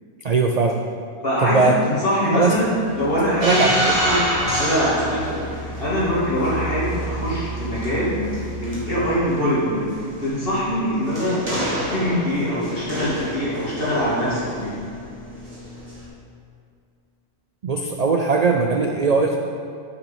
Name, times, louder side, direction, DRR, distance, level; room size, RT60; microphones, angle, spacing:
voice 1, 0.2-0.8 1.4-1.8 2.3-2.5 3.4-3.7 12.5-12.6 17.6-19.4, right 4 dB, 75° right, 2 dB, 0.3 m, -19 dB
voice 2, 1.2-3.7 4.0-8.2 8.6-9.8 10.2-11.4 11.7-14.7, equal, 45° left, -8 dB, 2.7 m, -23 dB
sound 1, 2.5-8.9, right 1 dB, 60° right, 2.4 m, -34 dB
sound 2, 3.4-16.0, equal, 25° right, 2.2 m, -29 dB
8.1 x 6.4 x 5.2 m, 2.3 s
omnidirectional pair, 1.4 m